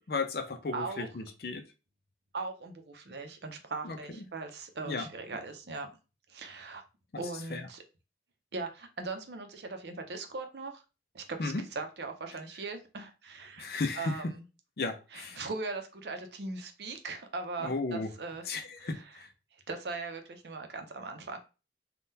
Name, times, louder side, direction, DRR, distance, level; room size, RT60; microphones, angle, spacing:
voice 1, 0.1-1.6 3.8-4.0 4.9-5.1 7.5-7.6 11.4-11.6 13.6-14.2 14.8-15.4 17.6-18.1 18.5-19.3, left 3 dB, 60° left, 6 dB, 0.5 m, -34 dB
voice 2, 0.7-1.1 2.3-5.9 6.3-6.8 7.2-7.8 8.5-10.8 11.1-14.4 15.1-18.5 18.8-19.2 19.7-21.4, right 3 dB, 70° right, 6 dB, 0.6 m, -40 dB
3.6 x 2.3 x 2.7 m, 0.31 s
head